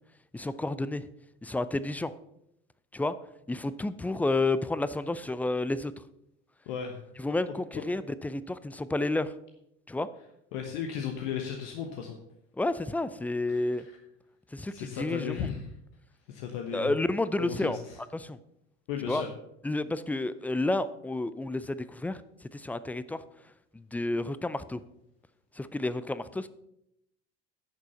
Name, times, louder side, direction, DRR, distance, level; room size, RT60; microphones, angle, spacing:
voice 1, 0.3-1.0 1.4-2.1 2.9-3.1 3.5-5.9 7.2-9.3 9.9-10.1 12.6-13.8 14.5-15.5 16.7-17.8 18.1-18.4 19.1-19.2 19.6-22.2 22.5-23.2 23.7-24.8 25.6-26.5, left 2 dB, 5° left, 15 dB, 0.4 m, -30 dB
voice 2, 6.7-7.3 7.7-7.8 10.5-12.2 13.5-14.0 14.7-15.7 16.3-17.0 17.4-18.0 18.9-19.3, left 8 dB, 60° left, 4 dB, 1.3 m, -36 dB
10.5 x 6.8 x 5.7 m, 0.80 s
figure-of-eight pair, 65°, 36 cm